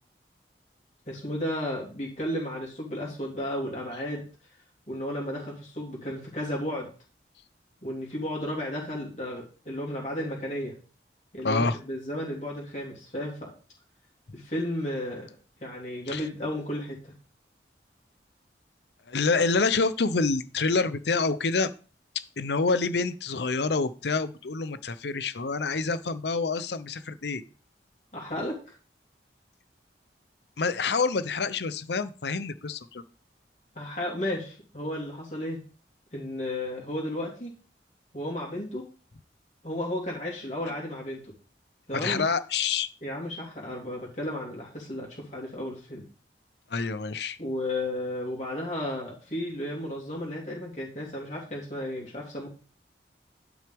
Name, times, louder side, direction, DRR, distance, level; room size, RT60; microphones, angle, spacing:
voice 1, 1.1-4.2 4.9-6.9 7.8-10.7 11.3-13.5 14.3-15.3 15.6-17.1 28.1-28.7 33.7-35.6 36.1-37.5 38.1-38.8 39.6-41.2 41.9-42.2 43.0-46.0 47.4-52.5, left 1 dB, 40° left, -3 dB, 3.1 m, -33 dB
voice 2, 11.4-11.8 16.1-16.3 19.1-21.7 22.4-27.4 30.6-33.0 41.9-42.9 46.7-47.4, left 4 dB, 75° left, 14 dB, 0.7 m, -27 dB
10.0 x 6.2 x 3.5 m, 0.37 s
head